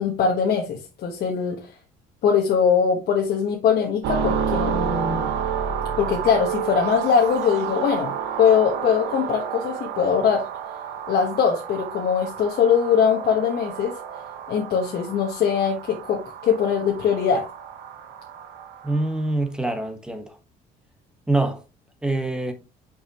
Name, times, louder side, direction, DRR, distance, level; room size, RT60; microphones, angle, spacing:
voice 1, 0.0-1.7 2.2-5.3 6.0-10.4 11.1-13.9 14.5-17.4, left 7 dB, 65° left, 1.3 m, -21 dB
sound 1, 4.0-19.1, right 7 dB, 85° right, 1.0 m, -30 dB
voice 2, 18.8-20.4 21.3-21.6 22.0-22.5, right 2 dB, 5° right, 1.3 m, -24 dB
5.8 x 5.4 x 3.0 m
cardioid pair, 110°, 17 cm